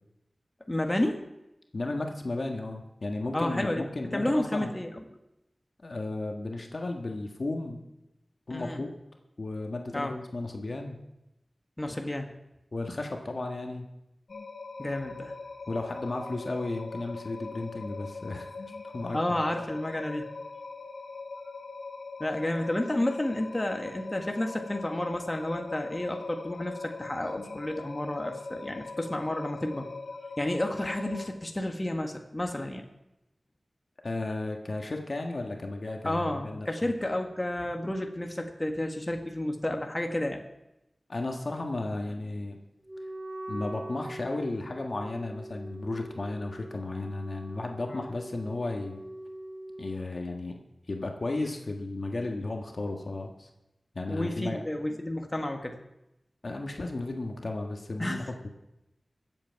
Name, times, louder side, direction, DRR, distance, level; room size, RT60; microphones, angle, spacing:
voice 1, 0.7-1.2 3.3-3.9 4.1-5.0 8.5-8.8 9.9-10.1 11.8-12.3 14.8-15.3 19.1-20.3 22.2-29.9 30.4-32.8 36.0-40.4 47.9-48.0 54.1-55.8 58.0-58.3, left 1 dB, 25° left, 3 dB, 1.5 m, -31 dB
voice 2, 1.7-4.7 5.8-7.8 8.5-8.9 9.4-11.0 12.7-13.9 15.7-18.5 18.9-19.4 34.0-36.9 41.1-42.6 43.5-49.0 49.8-50.6 50.9-53.5 53.9-54.6 56.4-58.5, left 2 dB, 60° left, 3 dB, 1.5 m, -34 dB
sound 1, 14.3-31.3, left 3 dB, 85° left, 1.0 m, -42 dB
Wind instrument woodwind instrument, 42.9-49.9, right 1 dB, 40° right, 2.8 m, -43 dB
23.5 x 8.0 x 4.7 m, 0.90 s
wide cardioid pair, 55°, 0 cm